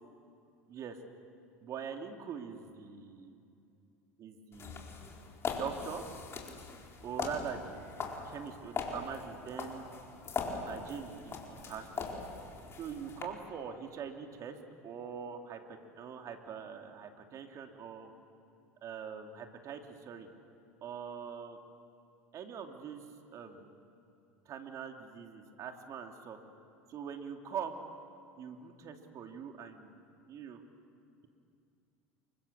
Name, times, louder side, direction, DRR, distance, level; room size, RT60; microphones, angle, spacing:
voice 1, 1.6-3.3 4.2-4.9 5.6-6.0 7.0-9.9 10.6-12.1 12.8-14.6 14.8-18.1 18.8-20.3 20.8-21.6 22.3-23.0 23.3-23.7 24.5-26.4 26.9-27.8 28.4-29.9 30.3-30.6, right 7 dB, 45° right, 4 dB, 3.1 m, -43 dB
sound 1, 4.5-13.2, left 4 dB, 35° left, 4.3 m, -41 dB
29.0 x 24.0 x 7.2 m, 2.5 s
hypercardioid pair, 80°, 8 cm